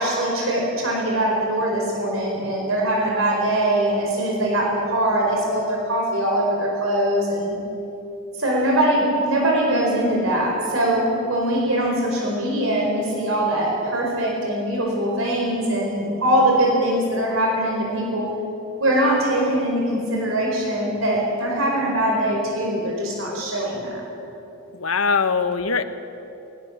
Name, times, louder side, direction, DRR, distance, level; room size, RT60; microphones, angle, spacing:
voice 1, 0.0-7.6 8.3-18.3 18.8-24.0, right 1 dB, 70° right, -1 dB, 4.6 m, -22 dB
voice 2, 24.7-25.8, left 5 dB, 90° left, 10 dB, 1.3 m, -21 dB
21.0 x 20.5 x 7.3 m, 2.9 s
head